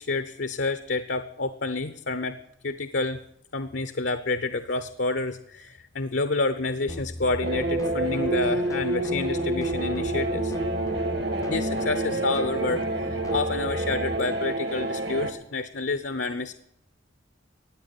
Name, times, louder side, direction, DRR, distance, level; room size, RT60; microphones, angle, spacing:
voice 1, 0.0-2.4 2.6-3.2 3.5-10.5 11.5-16.5, left 3 dB, 60° left, 11 dB, 0.8 m, -29 dB
sound 1, 6.9-14.2, left 1 dB, 15° left, 0.6 m, -38 dB
sound 2, 7.4-15.3, right 2 dB, 55° right, 1.7 m, -28 dB
14.5 x 9.4 x 9.5 m, 0.78 s
head